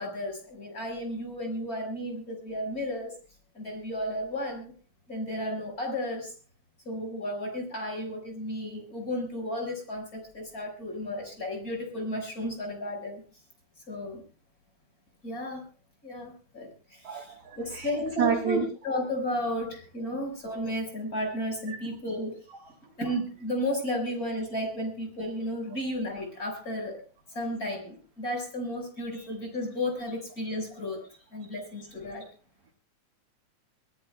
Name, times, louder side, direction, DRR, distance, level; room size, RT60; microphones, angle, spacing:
voice 1, 0.0-3.2 3.5-4.7 5.1-6.3 6.9-13.2 13.9-14.2 15.2-15.6 16.0-22.4 23.0-27.0 27.3-32.3, left 1 dB, 25° left, 2 dB, 5.7 m, -33 dB
voice 2, 17.0-17.9 18.2-18.7 21.7-21.8 29.1-29.3, right 7 dB, 55° right, 3 dB, 2.4 m, -29 dB
26.0 x 17.0 x 2.3 m, 0.35 s
omnidirectional pair, 3.6 m